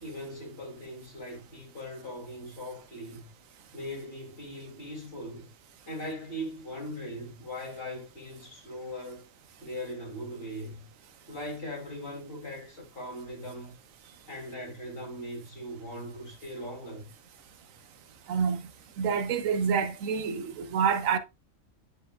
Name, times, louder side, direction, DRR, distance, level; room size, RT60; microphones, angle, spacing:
voice 1, 0.0-3.3 3.7-5.5 5.9-9.3 9.6-10.9 11.3-13.8 14.3-17.1, equal, 45° left, 2.9 m, -40 dB
voice 2, 18.3-18.6 19.0-21.2, right 6 dB, 85° right, 1.2 m, -27 dB
10.0 x 5.1 x 2.3 m
omnidirectional pair, 1.3 m